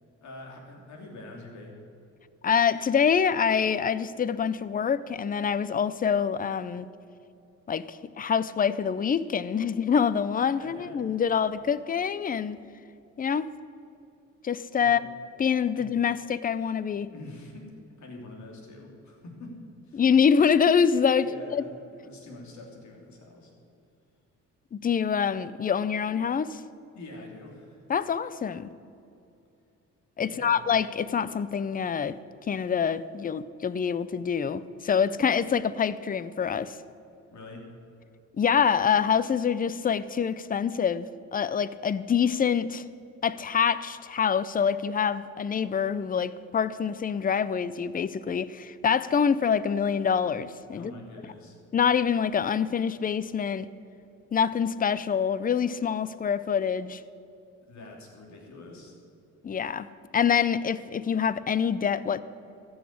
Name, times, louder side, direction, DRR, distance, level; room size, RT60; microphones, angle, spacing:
voice 1, 0.2-1.8 10.6-11.0 14.8-15.0 15.7-15.9 17.1-20.0 21.2-23.5 26.9-27.8 30.3-30.6 37.3-37.7 50.7-51.6 57.7-59.0, left 2 dB, 70° left, 1 dB, 2.9 m, -45 dB
voice 2, 2.4-6.9 7.7-12.6 13.2-13.5 14.4-15.0 15.4-17.1 19.9-21.6 24.7-26.6 27.9-28.7 30.2-32.2 32.5-36.8 38.4-41.1 41.3-42.8 43.2-50.9 51.7-53.7 54.3-57.0 59.4-59.9 60.1-62.2, left 7 dB, 30° left, 16 dB, 0.5 m, -25 dB
14.0 x 6.4 x 8.4 m, 2.6 s
cardioid pair, 90°, 30 cm